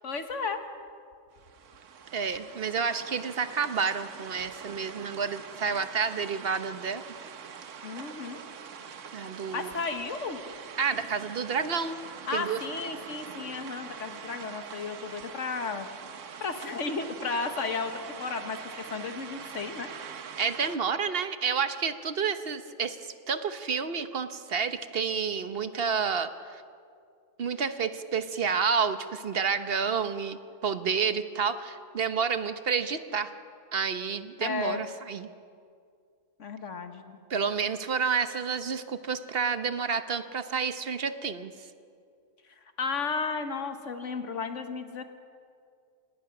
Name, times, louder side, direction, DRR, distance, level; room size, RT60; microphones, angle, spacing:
voice 1, 0.0-0.6 7.8-8.4 9.5-10.4 12.3-15.9 16.4-18.6 18.9-19.9 34.4-34.8 36.4-37.2 42.8-45.0, left 4 dB, 80° left, 7 dB, 1.8 m, -33 dB
sound 1, 1.3-20.8, right 7 dB, 85° right, 1.3 m, -44 dB
voice 2, 2.1-7.0 9.1-9.7 10.8-12.0 12.3-12.6 20.4-26.6 27.4-33.3 33.7-35.3 37.3-41.5, right 6 dB, 55° right, 10 dB, 1.1 m, -30 dB
26.5 x 19.0 x 6.0 m, 2.3 s
omnidirectional pair, 1.3 m